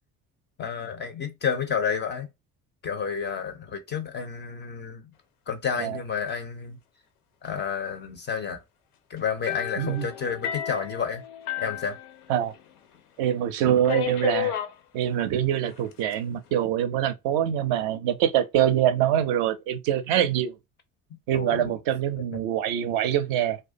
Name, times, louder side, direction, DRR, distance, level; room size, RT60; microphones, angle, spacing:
voice 1, 0.6-2.3 2.8-5.1 5.5-6.8 7.4-8.6 9.1-11.2 11.6-12.0 21.1-21.7, left 6 dB, 25° left, 0.4 m, -30 dB
sound 1, 9.5-12.7 13.0-13.1 13.9-14.8 15.7-16.1, left 11 dB, 80° left, 0.5 m, -32 dB
voice 2, 13.2-14.5 14.9-20.5 21.3-23.6, right 10 dB, 50° right, 0.4 m, -24 dB
2.4 x 2.1 x 2.4 m
figure-of-eight pair, 55°, 45 cm